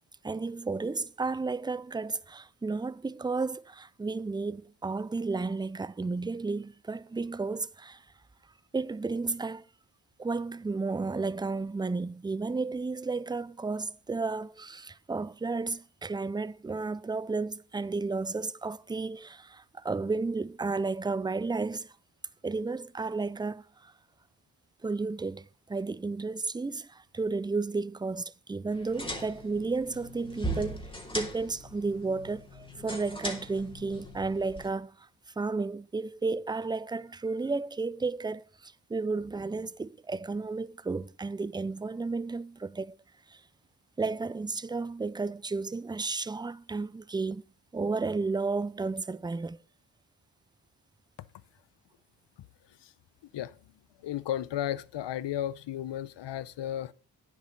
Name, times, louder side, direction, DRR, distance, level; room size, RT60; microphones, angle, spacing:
voice 1, 0.2-8.0 8.7-9.6 10.2-21.9 22.4-23.9 24.8-30.9 31.1-35.1 35.4-42.9 43.3-43.4 44.0-47.4 47.7-49.6, right 3 dB, 10° right, 0.4 m, -33 dB
sound 1, 28.7-34.7, right 1 dB, 10° left, 3.1 m, -39 dB
voice 2, 54.0-56.9, left 11 dB, 75° left, 0.8 m, -34 dB
9.9 x 7.5 x 5.3 m
cardioid pair, 85°, 43 cm